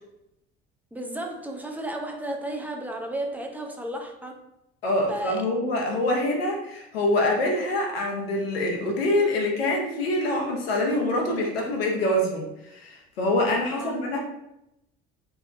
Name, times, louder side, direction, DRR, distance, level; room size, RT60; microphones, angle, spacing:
voice 1, 0.9-4.4 5.1-5.5 13.7-14.0, right 1 dB, 5° right, 2 dB, 0.4 m, -33 dB
voice 2, 4.8-12.4 12.7-14.2, left 1 dB, 90° left, -1 dB, 0.5 m, -25 dB
2.6 x 2.1 x 2.4 m, 0.86 s
hypercardioid pair, 60°, 29 cm